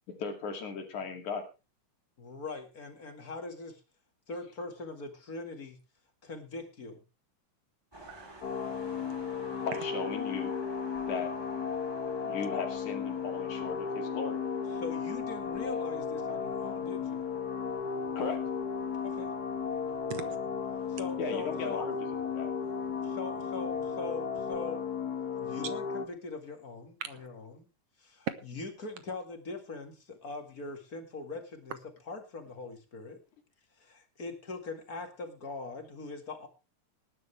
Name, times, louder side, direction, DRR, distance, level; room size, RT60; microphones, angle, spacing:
voice 1, 0.2-1.4 9.6-10.5 11.1-11.3 12.3-14.4 18.2-18.4 21.2-22.0 22.2-22.5, left 5 dB, 75° left, 3.9 m, -36 dB
voice 2, 2.2-3.8 4.3-5.8 6.2-7.0 14.7-17.3 19.0-19.3 20.1-20.3 20.9-21.8 23.0-24.8 25.4-27.7 28.0-31.8 32.1-33.2 33.8-36.5, left 3 dB, 35° left, 2.2 m, -41 dB
sound 1, 7.9-24.6, right 1 dB, 10° right, 2.9 m, -53 dB
voice 3, 7.9-9.7 20.1-20.4 27.0-27.1, right 9 dB, 65° right, 1.7 m, -45 dB
sound 2, 8.4-26.1, left 6 dB, 55° left, 1.1 m, -35 dB
18.5 x 10.5 x 3.4 m
omnidirectional pair, 3.4 m